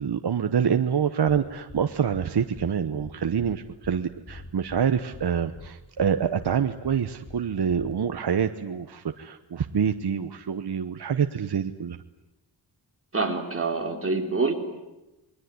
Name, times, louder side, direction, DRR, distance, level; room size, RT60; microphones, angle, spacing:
voice 1, 0.0-12.0, right 7 dB, 60° right, 8 dB, 1.1 m, -26 dB
sound 1, 1.3-1.4 1.7-1.8 2.1-2.3 2.5-2.7 3.0-3.1 3.4-3.5 3.8-4.0 4.3-4.8 5.1-5.3 5.5-5.7 6.0-6.1 6.4-6.5 6.8-7.0 7.3-7.4 7.7-7.9, left 2 dB, 35° left, 3.8 m, -43 dB
voice 2, 13.1-14.5, right 3 dB, 30° right, 3 dB, 3.9 m, -26 dB
28.0 x 22.0 x 9.6 m, 1.0 s
wide cardioid pair, 115°, 43 cm